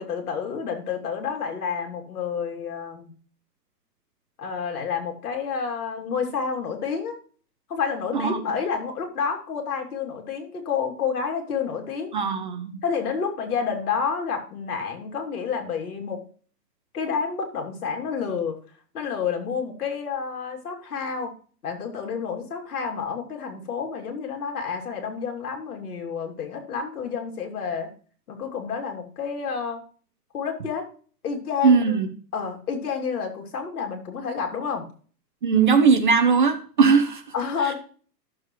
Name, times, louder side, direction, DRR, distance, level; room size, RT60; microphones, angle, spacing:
voice 1, 0.0-3.1 4.4-7.1 7.7-12.1 12.8-16.2 16.9-18.6 18.9-21.3 21.6-27.9 28.3-29.8 30.3-30.9 31.2-31.8 32.3-34.8 37.3-37.7, left 6 dB, 60° left, 2.9 m, -29 dB
voice 2, 8.1-8.6 12.1-12.8 31.6-32.1 35.4-37.2, right 5 dB, 30° right, 0.6 m, -19 dB
12.5 x 7.2 x 3.1 m
hypercardioid pair, 160°, 50 cm